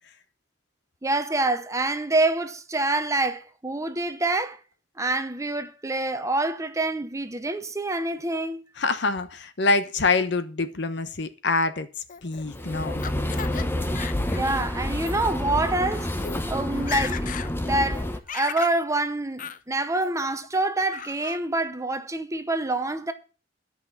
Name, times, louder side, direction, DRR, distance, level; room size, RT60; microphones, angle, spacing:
voice 1, 1.0-4.6 5.0-8.6 14.4-16.1 16.5-17.3 17.7-23.1, right 2 dB, 15° right, 0.8 m, -26 dB
voice 2, 8.8-11.9 12.2-13.0, left 3 dB, 65° left, 1.0 m, -25 dB
Laughter, 12.1-13.7 14.0-14.6 15.0-15.2 15.8-15.9 16.2-16.4 16.7-17.5 17.8-18.8 19.4-19.6 20.0-20.5 20.9-21.4, left 8 dB, 45° left, 0.6 m, -36 dB
sound 1, 12.4-18.2, left 1 dB, 10° left, 1.0 m, -29 dB
10.5 x 5.8 x 7.2 m
head